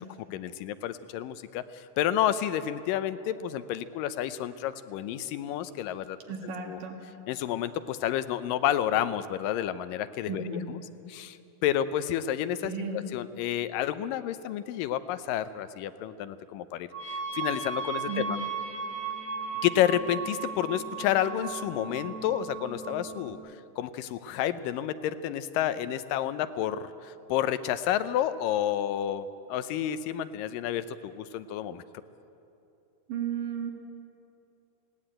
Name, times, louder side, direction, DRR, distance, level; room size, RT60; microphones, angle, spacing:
voice 1, 0.3-6.2 6.7-6.8 7.3-10.8 11.1-18.4 19.6-23.4 23.8-31.8, left 11 dB, 85° left, 13 dB, 2.4 m, -30 dB
voice 2, 6.3-7.0 10.3-10.6 12.6-13.0 18.1-18.3 33.1-33.7, right 6 dB, 75° right, 3 dB, 3.5 m, -34 dB
sound 1, 16.9-23.3, right 5 dB, 20° right, 2.0 m, -36 dB
19.5 x 18.0 x 8.9 m, 2.8 s
omnidirectional pair, 3.9 m